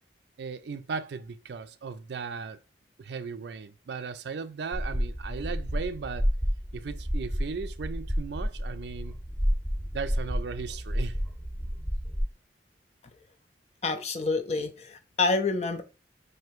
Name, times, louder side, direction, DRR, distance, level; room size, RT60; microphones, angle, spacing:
voice 1, 0.4-2.6 3.0-6.3 6.7-9.1 9.9-11.2, right 5 dB, 65° right, 0.4 m, -37 dB
sound 1, 4.7-12.2, equal, 5° left, 0.8 m, -30 dB
voice 2, 13.8-15.8, left 3 dB, 35° left, 0.4 m, -28 dB
3.0 x 2.6 x 4.4 m
head